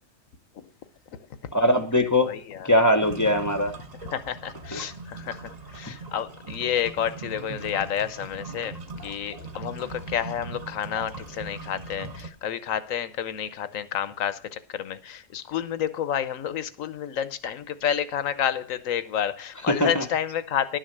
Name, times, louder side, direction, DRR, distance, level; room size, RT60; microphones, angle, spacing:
voice 1, 1.5-2.3 2.6-3.7 4.7-4.8 19.6-20.1, left 1 dB, 15° left, 0.8 m, -21 dB
voice 2, 2.2-2.7 4.1-20.8, left 9 dB, 85° left, 1.2 m, -30 dB
sound 1, 3.0-12.3, right 3 dB, 30° right, 1.3 m, -40 dB
11.5 x 6.4 x 6.7 m
omnidirectional pair, 1.3 m